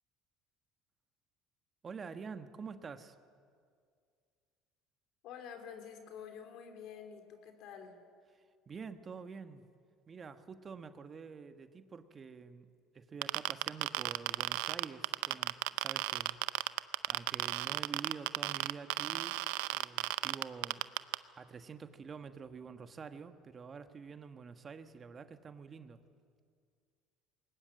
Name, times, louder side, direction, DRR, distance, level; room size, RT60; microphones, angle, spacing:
voice 1, 1.8-3.1 8.7-9.7 10.1-12.7 12.9-16.4 17.1-19.4 19.7-20.8 21.1-26.0, right 5 dB, 35° right, 9 dB, 1.3 m, -47 dB
voice 2, 5.2-8.0, left 7 dB, 65° left, 5 dB, 3.2 m, -48 dB
sound 1, 13.2-21.2, right 21 dB, 80° right, 0.5 m, -33 dB
21.5 x 19.5 x 7.9 m, 2.2 s
hypercardioid pair, 80°, 0 cm